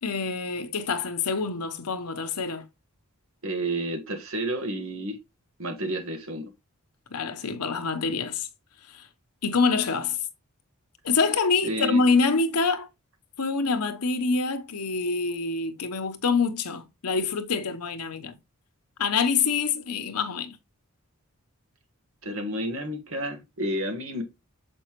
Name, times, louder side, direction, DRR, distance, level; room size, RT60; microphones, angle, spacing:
voice 1, 0.0-2.6 7.1-8.5 8.9-9.1 9.4-10.2 11.0-12.9 13.4-18.4 19.0-20.6, left 4 dB, 90° left, 0.9 m, -26 dB
voice 2, 3.4-5.2 5.6-6.4 11.6-12.0 22.2-24.2, right 1 dB, 65° right, 1.6 m, -30 dB
6.7 x 5.4 x 3.0 m
head